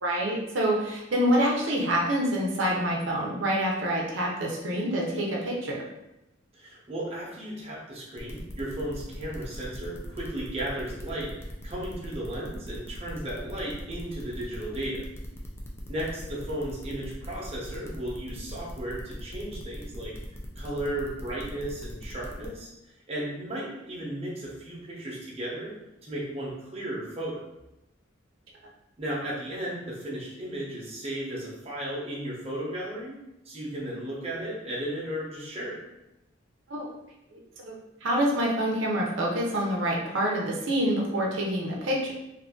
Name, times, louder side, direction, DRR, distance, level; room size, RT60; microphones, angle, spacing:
voice 1, 0.0-5.8 36.7-36.9 37.3-37.4 37.7-37.8 38.0-42.1, equal, 85° right, -2 dB, 0.7 m, -26 dB
voice 2, 6.5-15.0 15.9-20.1 20.6-22.7 23.1-25.7 26.0-27.4 29.0-33.2 33.4-35.8, right 1 dB, 35° right, -5 dB, 0.9 m, -35 dB
sound 1, 8.2-22.5, equal, 15° left, 0.4 m, -43 dB
2.7 x 2.5 x 3.7 m, 0.91 s
head